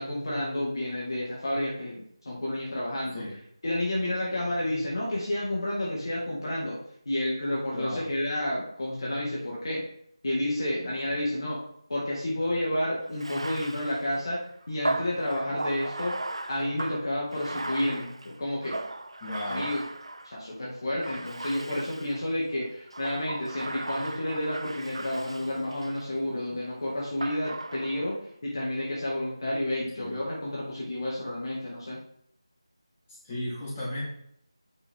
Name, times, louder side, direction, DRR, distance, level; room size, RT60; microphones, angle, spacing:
voice 1, 0.0-3.2 3.6-6.8 7.1-9.8 10.2-11.6 11.9-16.2 16.5-18.8 19.4-19.8 20.2-28.2 28.4-32.0, left 1 dB, 50° left, -4 dB, 2.3 m, -30 dB
voice 2, 7.7-8.0 19.2-19.7 30.0-30.2 33.1-34.0, left 1 dB, 20° left, -8 dB, 3.7 m, -35 dB
Bathtub (filling or washing), 13.1-20.5 21.0-22.3 22.9-26.1 27.2-28.2, right 2 dB, 75° right, 0.7 m, -37 dB
8.9 x 6.0 x 3.8 m, 0.71 s
figure-of-eight pair, 170°, 3 cm